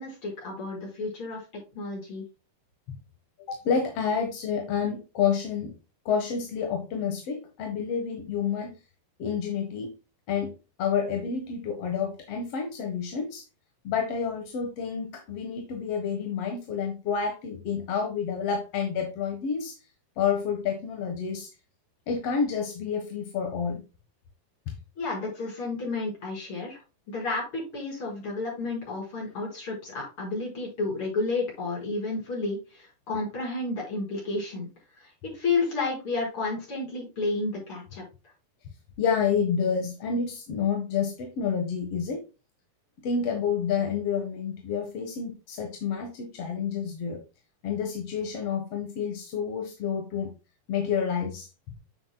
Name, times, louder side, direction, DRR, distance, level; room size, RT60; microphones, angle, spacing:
voice 1, 0.0-1.4 1.7-2.2 25.0-26.8 27.1-34.7 35.0-38.1, left 3 dB, 35° left, -3 dB, 5.7 m, -31 dB
voice 2, 3.5-5.7 6.1-8.7 9.2-9.9 10.3-10.5 10.8-13.4 13.8-19.7 20.2-21.5 22.1-23.8 24.7-24.8 39.0-42.2 43.0-47.2 47.6-50.3 50.7-51.8, left 6 dB, 55° left, 3 dB, 1.8 m, -29 dB
9.3 x 7.0 x 2.2 m, 0.29 s
omnidirectional pair, 4.5 m